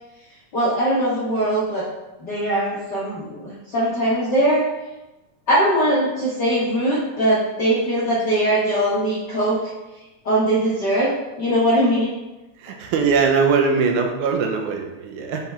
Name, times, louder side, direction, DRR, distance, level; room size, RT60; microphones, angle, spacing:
voice 1, 0.5-1.8 2.2-4.6 5.5-9.6 10.2-11.1 11.4-12.1, right 1 dB, 60° left, -8 dB, 1.1 m, -21 dB
voice 2, 12.9-15.4, right 5 dB, 85° right, 2 dB, 2.2 m, -20 dB
5.9 x 4.3 x 4.2 m, 1.0 s
omnidirectional pair, 3.4 m